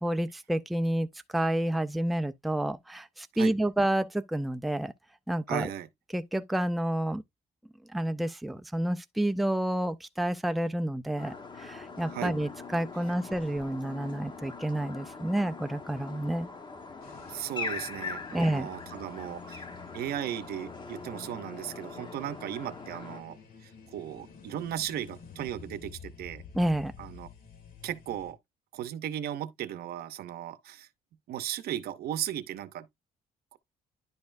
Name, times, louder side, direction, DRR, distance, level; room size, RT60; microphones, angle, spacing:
voice 1, 0.0-1.1 1.3-4.9 5.3-5.7 6.1-7.2 7.9-16.5 18.3-18.7 26.5-26.9, right 1 dB, ahead, 0.4 m, -29 dB
voice 2, 5.5-5.9 12.1-12.3 17.3-19.7 19.9-26.4 27.0-27.3 27.8-28.4 28.7-30.9 31.3-32.9 33.5-33.6, right 11 dB, 80° right, 0.8 m, -36 dB
sound 1, 11.2-23.2, left 4 dB, 30° left, 1.1 m, -42 dB
sound 2, 17.0-28.3, left 6 dB, 65° left, 2.0 m, -50 dB
10.5 x 4.2 x 2.5 m
cardioid pair, 120°, 16 cm